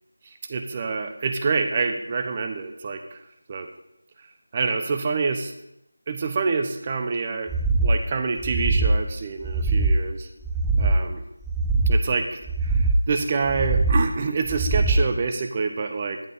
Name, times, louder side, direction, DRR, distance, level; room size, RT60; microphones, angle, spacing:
voice 1, 0.3-3.2 3.5-3.7 4.5-5.5 6.1-7.6 7.8-10.3 10.8-11.2 11.9-16.2, right 4 dB, 25° right, 5 dB, 0.9 m, -27 dB
sound 1, 7.5-8.0 8.4-9.0 9.4-10.0 10.4-11.0 11.4-12.0 12.4-13.0 13.4-14.0 14.4-15.0, right 2 dB, ahead, 0.5 m, -21 dB
11.0 x 9.0 x 4.1 m, 0.82 s
figure-of-eight pair, 170°, 0 cm